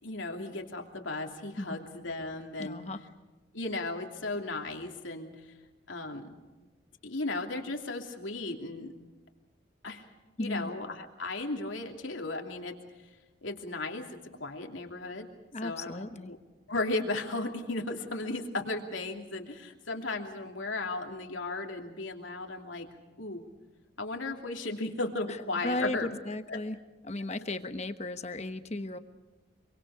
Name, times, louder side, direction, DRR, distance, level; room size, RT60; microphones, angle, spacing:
voice 1, 0.0-2.8 3.5-5.5 5.9-6.3 7.0-8.9 9.8-10.1 10.4-12.8 13.4-14.1 14.4-15.3 15.6-16.4 16.7-22.9 23.2-23.4 24.0-26.2 26.5-26.6, left 2 dB, 80° left, 3 dB, 2.8 m, -35 dB
voice 2, 2.6-3.0 10.4-10.7 15.5-16.3 25.3-25.4 25.6-26.8 27.0-29.0, left 1 dB, 35° left, 9 dB, 1.1 m, -35 dB
26.0 x 24.5 x 4.9 m, 1.2 s
head